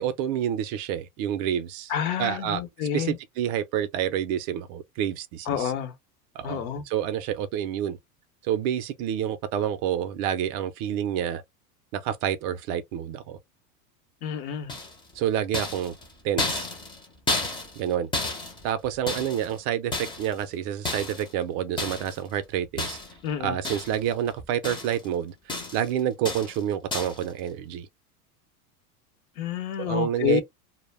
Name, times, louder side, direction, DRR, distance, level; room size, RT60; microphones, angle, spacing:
voice 1, 0.0-1.9 2.2-2.6 2.9-5.7 6.3-8.0 8.4-11.4 11.9-13.4 15.1-15.9 16.2-16.7 17.8-18.1 18.6-23.0 23.4-27.9 29.8-30.4, right 10 dB, 45° right, 0.4 m, -28 dB
voice 2, 1.9-3.2 5.5-5.9 6.4-6.8 14.2-14.7 23.2-23.5 29.4-30.4, left 9 dB, 70° left, 0.9 m, -28 dB
sound 1, 14.7-15.1 15.5-17.9 18.1-19.6 19.9-20.4 20.9-21.3 21.8-22.2 22.8-23.3 23.6-24.1 24.4-25.1 25.5-25.9 26.3-26.6 26.9-27.3, left 2 dB, 10° left, 0.5 m, -32 dB
2.1 x 2.0 x 3.2 m
supercardioid pair, 120°, 45 cm